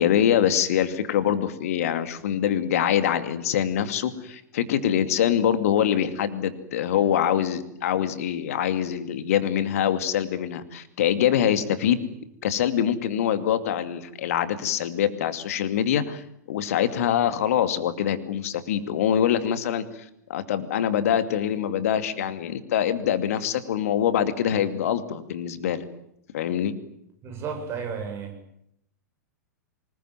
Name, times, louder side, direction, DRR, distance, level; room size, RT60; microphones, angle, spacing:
voice 1, 0.0-12.0 12.4-25.8 26.3-26.7, left 9 dB, 55° left, 11 dB, 2.5 m, -24 dB
voice 2, 27.2-28.3, right 6 dB, 25° right, 5 dB, 7.3 m, -32 dB
25.0 x 21.0 x 9.2 m, 0.75 s
figure-of-eight pair, 100°, 10 cm